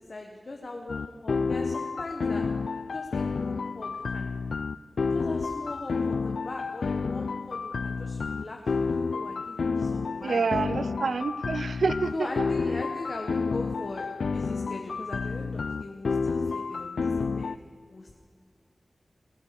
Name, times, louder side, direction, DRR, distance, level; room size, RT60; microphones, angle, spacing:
voice 1, 0.0-2.5 2.9-4.3 5.1-10.5 12.1-17.5 17.9-18.1, left 2 dB, 55° left, 1 dB, 1.3 m, -40 dB
sound 1, 0.9-17.6, left 4 dB, 85° left, 0.3 m, -30 dB
voice 2, 10.2-12.1, right 4 dB, 85° right, 14 dB, 0.4 m, -27 dB
19.5 x 8.2 x 6.8 m, 2.2 s
wide cardioid pair, 60°, 0 cm